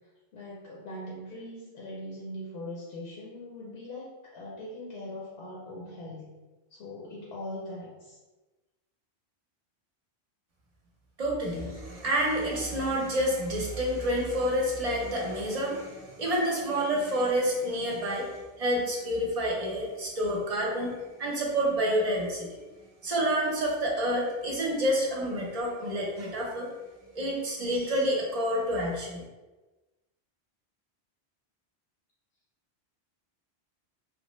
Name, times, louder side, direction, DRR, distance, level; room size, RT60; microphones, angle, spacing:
voice 1, 0.3-6.3 6.7-8.2, left 1 dB, 70° left, -4 dB, 0.8 m, -41 dB
voice 2, 11.2-22.6 23.0-26.7 27.1-29.2, equal, 40° right, -3 dB, 0.7 m, -28 dB
3.1 x 2.1 x 3.0 m, 1.2 s
omnidirectional pair, 1.1 m